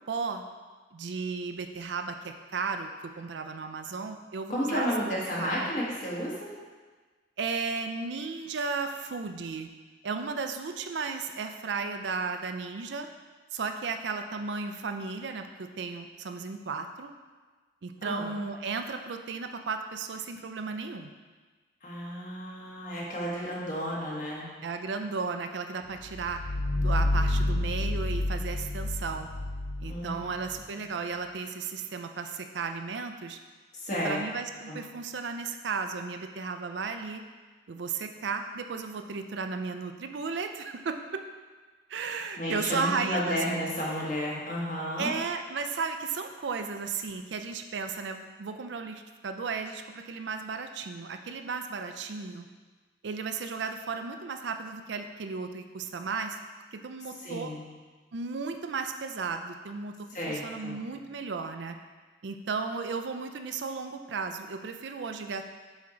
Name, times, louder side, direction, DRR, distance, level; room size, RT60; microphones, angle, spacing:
voice 1, 0.1-0.4 0.9-5.7 7.4-9.7 10.0-13.1 13.5-17.1 17.8-21.1 24.6-26.4 26.7-29.3 29.8-33.4 34.0-37.2 37.7-41.2 41.9-43.4 45.0-52.5 53.0-56.4 56.7-57.5 58.1-59.9 60.3-61.8 62.2-65.4, right 4 dB, 70° right, 6 dB, 0.5 m, -34 dB
voice 2, 4.5-6.5 18.0-18.3 21.8-24.5 29.9-30.3 33.7-34.2 34.7-34.8 42.4-45.1 57.2-57.6 60.1-60.8, equal, 40° left, -5 dB, 1.6 m, -32 dB
sound 1, 26.0-30.6, left 1 dB, 65° left, 0.5 m, -29 dB
7.1 x 4.4 x 3.8 m, 1.4 s
head